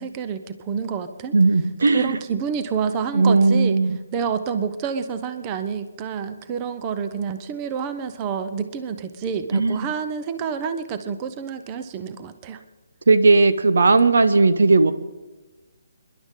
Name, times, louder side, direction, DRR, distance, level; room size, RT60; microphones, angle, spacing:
voice 1, 0.0-1.3 1.9-3.8 4.1-12.6, right 6 dB, 20° right, 10 dB, 0.6 m, -28 dB
voice 2, 1.3-2.2 3.1-4.0 9.5-9.9 13.1-14.9, right 3 dB, 80° right, 12 dB, 0.9 m, -17 dB
27.0 x 11.0 x 3.7 m, 1.2 s
hypercardioid pair, 165°, 0 cm